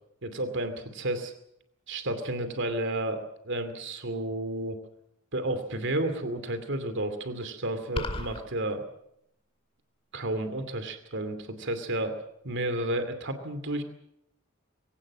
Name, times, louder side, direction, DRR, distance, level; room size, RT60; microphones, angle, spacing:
voice 1, 0.2-1.3 1.9-4.8 5.3-8.8 10.1-12.2 12.4-13.8, right 1 dB, 60° right, 9 dB, 2.6 m, -31 dB
sound 1, 8.0-8.4, left 1 dB, 25° left, 2.3 m, -32 dB
22.0 x 17.5 x 7.4 m, 0.77 s
head